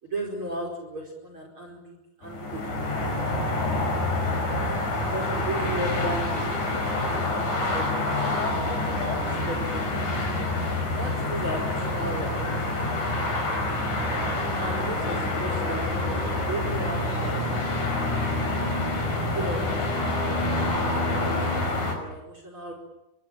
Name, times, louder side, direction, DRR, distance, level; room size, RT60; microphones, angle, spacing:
voice 1, 0.0-3.0 4.7-7.5 7.7-10.2 10.9-12.3 14.6-17.4 19.0-20.9 21.2-21.7 21.9-22.7, right 1 dB, 30° right, 2 dB, 5.3 m, -36 dB
sound 1, 2.2-21.9, left 2 dB, 50° left, 6.7 m, -27 dB
25.5 x 21.0 x 9.0 m, 0.89 s
omnidirectional pair, 4.4 m